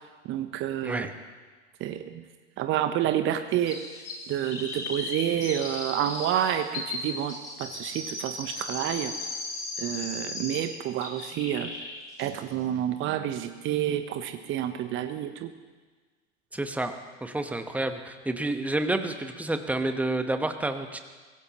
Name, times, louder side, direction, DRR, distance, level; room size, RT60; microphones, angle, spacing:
voice 1, 0.2-1.1 1.8-2.2 2.6-3.8 4.3-9.1 9.8-11.7 12.2-15.5, right 11 dB, 35° right, 8 dB, 1.0 m, -29 dB
Chirp tweet, 3.7-10.7 11.0-11.9 12.2-12.3, left 2 dB, 85° left, 5.9 m, -36 dB
voice 2, 16.5-16.9 17.2-21.0, right 2 dB, 5° right, 7 dB, 1.2 m, -29 dB
24.5 x 17.0 x 3.1 m, 1.4 s
figure-of-eight pair, 90°, 35 cm